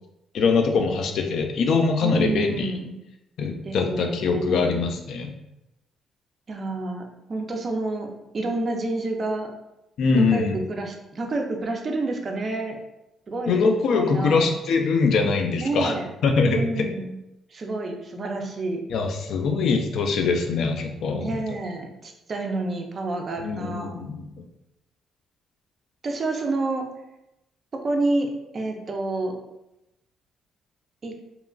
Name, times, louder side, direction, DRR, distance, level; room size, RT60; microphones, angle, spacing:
voice 1, 0.3-2.7 3.4-5.3 10.0-10.6 13.5-16.0 16.2-16.9 18.9-21.4 23.4-24.3, left 4 dB, 70° left, 3 dB, 0.4 m, -23 dB
voice 2, 2.0-2.9 3.6-4.6 6.5-9.5 10.1-12.8 13.3-13.6 13.9-14.5 15.6-16.1 16.4-17.1 17.5-18.8 21.1-24.2 26.0-26.9 27.8-29.4 31.0-31.1, right 2 dB, 40° right, 3 dB, 0.4 m, -29 dB
2.9 x 2.3 x 2.3 m, 0.90 s
cardioid pair, 90°, 0 cm